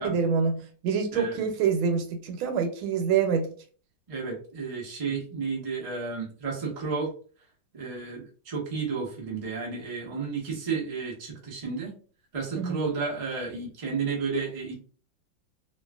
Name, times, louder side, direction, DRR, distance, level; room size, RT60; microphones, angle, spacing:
voice 1, 0.0-3.5 5.1-5.2 12.6-12.8, right 6 dB, 80° right, 6 dB, 1.4 m, -26 dB
voice 2, 1.1-1.5 4.1-7.1 7.7-11.9 12.3-14.8, right 4 dB, 55° right, -3 dB, 0.3 m, -32 dB
3.0 x 2.4 x 2.3 m, 0.42 s
omnidirectional pair, 2.2 m